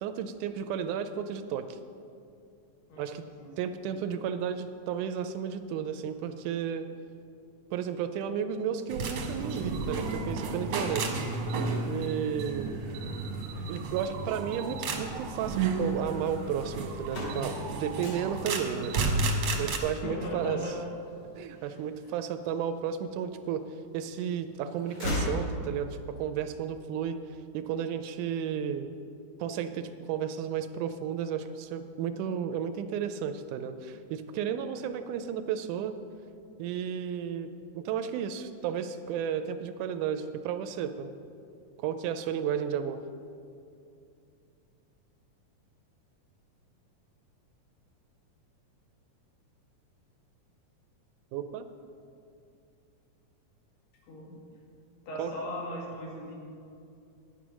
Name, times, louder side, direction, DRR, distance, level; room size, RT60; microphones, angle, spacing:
voice 1, 0.0-1.8 3.0-3.2 3.6-6.9 7.7-11.2 11.9-13.0 13.7-19.0 19.3-20.7 21.4-27.2 27.5-28.9 29.4-36.0 36.6-41.1 41.8-43.0 51.3-51.7 55.2-55.3, right 8 dB, 80° right, 10 dB, 1.9 m, -33 dB
voice 2, 2.9-3.5 3.8-4.0 19.9-20.8 21.5-21.8 54.1-54.4 55.1-56.3, left 1 dB, 85° left, -2 dB, 3.8 m, -38 dB
sound 1, 8.9-19.8, right 3 dB, 60° right, 1.5 m, -32 dB
sound 2, 17.0-22.8 23.3-24.2 24.5-26.1, left 1 dB, 55° left, 3.9 m, -37 dB
10.5 x 9.5 x 6.1 m, 2.6 s
omnidirectional pair, 3.8 m